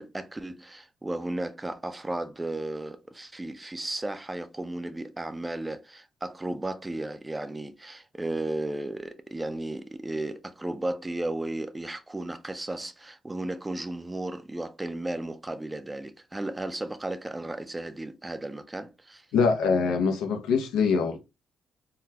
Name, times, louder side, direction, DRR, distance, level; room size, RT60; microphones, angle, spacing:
voice 1, 0.0-19.3, right 2 dB, 15° right, 0.4 m, -34 dB
voice 2, 19.3-21.2, left 5 dB, 90° left, 0.7 m, -24 dB
3.7 x 2.2 x 2.8 m
cardioid pair, 90°, 0 cm